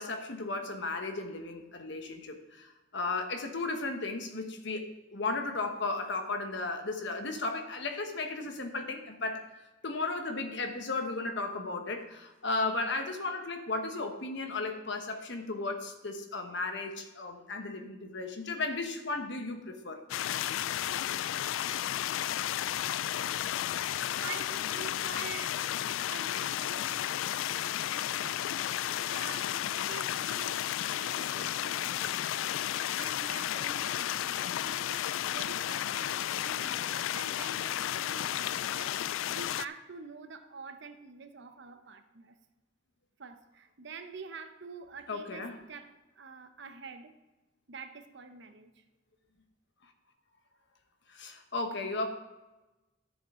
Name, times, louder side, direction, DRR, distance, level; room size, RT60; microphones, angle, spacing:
voice 1, 0.0-9.4 9.8-20.0 31.2-31.5 45.1-45.6 51.1-52.1, left 3 dB, 65° left, 6 dB, 1.2 m, -35 dB
sound 1, 20.1-39.6, left 11 dB, 80° left, 0.3 m, -33 dB
voice 2, 24.2-25.6 26.1-32.4 32.9-42.4 43.2-45.9 46.1-47.1 47.7-48.8, right 5 dB, 60° right, 8 dB, 0.8 m, -47 dB
12.5 x 7.4 x 3.8 m, 1.1 s
head